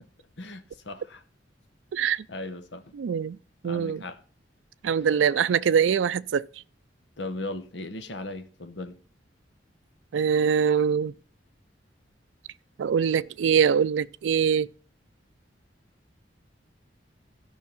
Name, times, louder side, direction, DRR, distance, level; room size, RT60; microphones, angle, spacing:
voice 1, 0.4-1.2 2.3-3.0 3.6-4.2 7.2-9.0, left 2 dB, 75° left, 1.0 m, -37 dB
voice 2, 1.9-2.2 3.0-3.4 3.6-4.0 4.8-6.5 10.1-11.1 12.8-14.7, right 7 dB, 85° right, 0.4 m, -23 dB
13.0 x 5.7 x 5.4 m
head